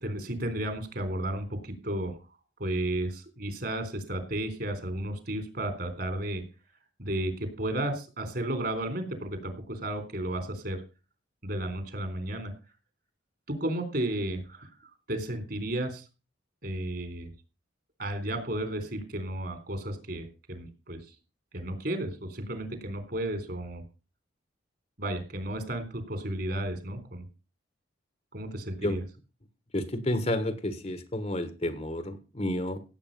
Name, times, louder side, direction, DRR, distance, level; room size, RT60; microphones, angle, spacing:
voice 1, 0.0-2.2 2.6-6.4 7.0-10.8 11.4-12.5 13.5-14.7 15.1-16.0 16.6-17.3 18.0-21.0 21.5-23.8 25.0-27.3 28.3-29.0, right 1 dB, 55° right, 8 dB, 3.7 m, -33 dB
voice 2, 29.7-32.8, left 1 dB, 35° left, 11 dB, 1.4 m, -30 dB
17.0 x 8.1 x 5.5 m, 0.33 s
head